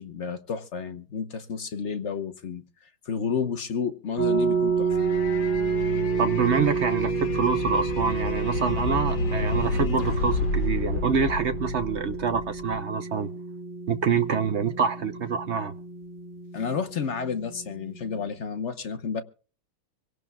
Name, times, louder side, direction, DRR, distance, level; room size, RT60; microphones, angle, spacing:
voice 1, 0.0-2.6 3.1-5.0 16.5-19.2, left 6 dB, 50° left, 0.8 m, -31 dB
sound 1, 4.2-18.3, right 6 dB, 35° right, 2.9 m, -30 dB
sound 2, 4.9-12.8, left 3 dB, 70° left, 2.4 m, -30 dB
voice 2, 6.2-13.3 13.9-15.7, right 6 dB, 70° right, 0.6 m, -26 dB
25.0 x 17.5 x 2.3 m
omnidirectional pair, 2.3 m